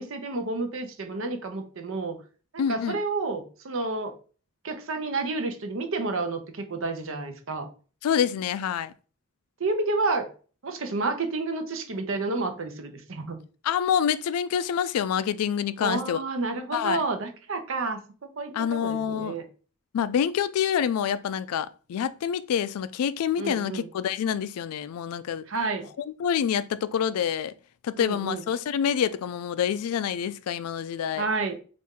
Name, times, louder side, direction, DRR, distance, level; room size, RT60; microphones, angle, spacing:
voice 1, 0.0-2.2 2.5-4.1 4.6-7.7 9.6-10.3 10.6-13.4 15.8-18.0 18.4-19.4 23.4-23.9 25.5-25.9 28.0-28.4 31.2-31.6, right 3 dB, 60° right, 0.7 m, -30 dB
voice 2, 2.6-3.0 8.0-8.9 13.6-16.2 16.7-17.0 18.5-19.4 19.9-25.5 26.2-27.5 27.8-31.2, left 8 dB, 85° left, 0.3 m, -27 dB
4.2 x 2.5 x 3.6 m
head